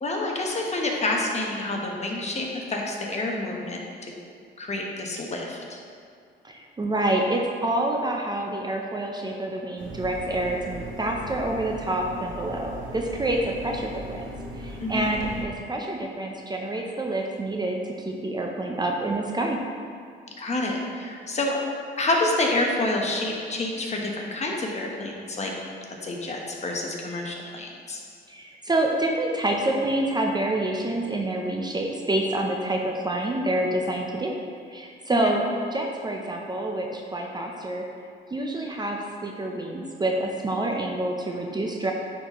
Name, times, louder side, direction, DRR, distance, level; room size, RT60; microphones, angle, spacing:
voice 1, 0.0-4.1 4.6-5.8 14.8-15.1 20.4-21.6 22.0-25.5 26.0-28.0 35.1-35.3, left 2 dB, 35° left, -1 dB, 1.1 m, -28 dB
voice 2, 6.4-14.2 14.6-19.6 28.3-34.3 34.7-35.4 35.7-37.8 38.3-41.9, right 1 dB, 20° right, 1 dB, 0.6 m, -27 dB
sound 1, 9.8-15.4, equal, 70° right, 1.0 m, -38 dB
9.4 x 4.3 x 3.0 m, 2.3 s
cardioid pair, 90°, 20 cm